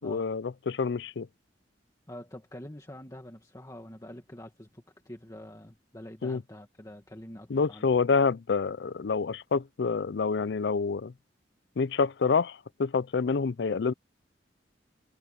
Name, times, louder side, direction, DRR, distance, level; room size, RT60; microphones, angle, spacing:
voice 1, 0.0-1.3 6.2-6.4 7.5-11.1 11.8-13.9, left 5 dB, 65° left, 0.5 m, -27 dB
voice 2, 2.1-7.9, left 1 dB, 20° left, 2.0 m, -46 dB
head